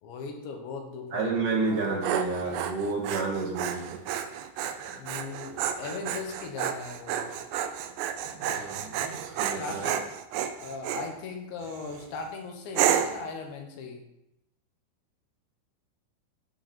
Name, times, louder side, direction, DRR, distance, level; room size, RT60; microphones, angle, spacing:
voice 1, 0.0-1.3 1.7-1.8 4.9-7.4 9.0-9.1 9.6-10.0 10.4-14.0, left 4 dB, 80° left, 3 dB, 3.5 m, -38 dB
voice 2, 1.1-4.0 8.4-9.8, right 3 dB, 55° right, -3 dB, 2.8 m, -30 dB
Dog, 1.7-11.1 11.6-12.1 12.8-13.3, right 9 dB, 80° right, 2.8 m, -31 dB
14.5 x 6.1 x 4.3 m, 0.86 s
omnidirectional pair, 5.2 m